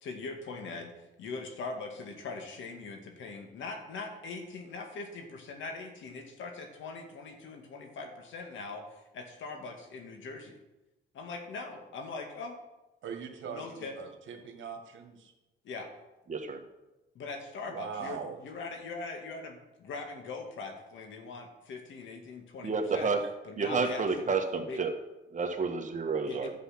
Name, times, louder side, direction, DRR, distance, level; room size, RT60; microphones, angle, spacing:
voice 1, 0.0-10.6 11.1-12.6 13.5-13.9 15.6-15.9 17.1-23.1 23.4-24.2 24.7-24.8 26.3-26.5, left 3 dB, 75° left, 3 dB, 2.2 m, -41 dB
voice 2, 13.0-15.3 17.7-18.4, right 6 dB, 70° right, 4 dB, 1.9 m, -41 dB
voice 3, 16.3-16.6 22.6-23.2 23.6-24.9 25.3-26.5, right 4 dB, 40° right, 3 dB, 1.7 m, -30 dB
11.0 x 7.7 x 6.0 m, 1.0 s
cardioid pair, 90°, 20 cm